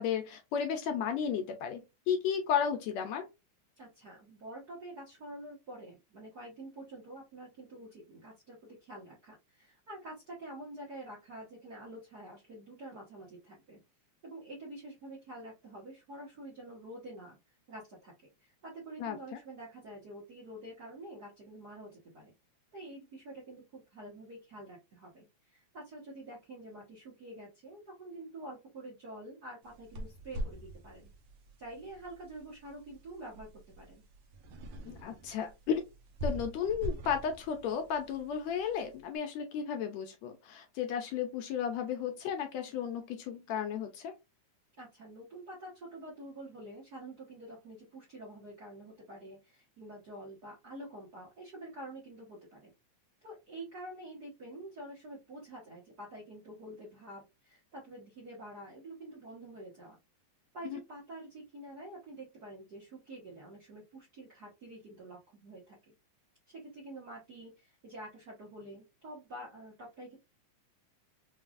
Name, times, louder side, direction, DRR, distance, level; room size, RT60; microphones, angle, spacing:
voice 1, 0.0-3.3 19.0-19.2 34.9-35.8 36.2-44.1 60.7-60.8, left 7 dB, 75° left, 1.7 m, -34 dB
voice 2, 3.8-13.8 14.2-18.1 18.4-22.3 22.7-31.1 31.6-33.5 33.8-34.0 44.8-52.7 53.2-60.0 60.5-65.9 66.5-70.2, right 1 dB, 60° right, 1.0 m, -47 dB
sound 1, 29.6-39.0, equal, 75° right, 1.3 m, -43 dB
5.3 x 2.4 x 2.4 m
omnidirectional pair, 3.4 m